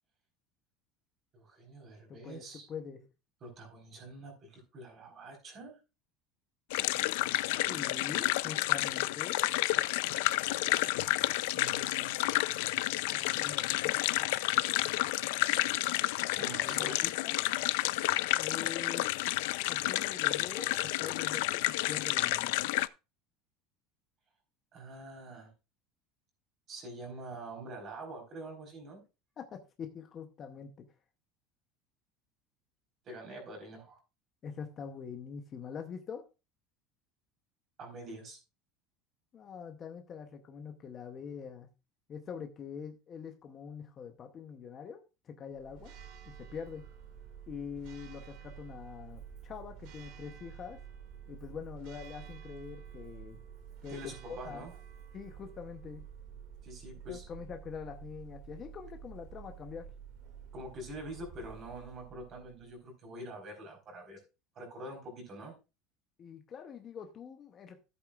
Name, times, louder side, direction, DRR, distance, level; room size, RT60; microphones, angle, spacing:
voice 1, 1.3-2.7 3.4-5.8 11.5-12.1 16.4-17.0 24.7-25.5 26.7-29.0 33.0-34.0 37.8-38.4 53.9-54.7 56.6-57.3 60.5-64.2 64.5-65.5, right 1 dB, 30° right, 2 dB, 4.2 m, -45 dB
voice 2, 2.1-2.4 2.7-3.0 7.7-9.4 13.1-14.4 16.6-17.4 18.4-19.1 19.7-22.7 29.4-30.8 34.4-36.2 39.3-41.7 42.1-45.9 46.3-46.8 47.5-50.8 51.3-53.4 53.8-54.6 55.1-56.0 57.1-59.9 66.2-67.8, left 6 dB, 25° left, 5 dB, 0.8 m, -44 dB
sound 1, 6.7-22.9, left 18 dB, 75° left, 0.4 m, -30 dB
Church bell, 45.5-62.8, right 8 dB, 55° right, 2.1 m, -50 dB
14.0 x 8.3 x 2.4 m, 0.29 s
cardioid pair, 180°, 0 cm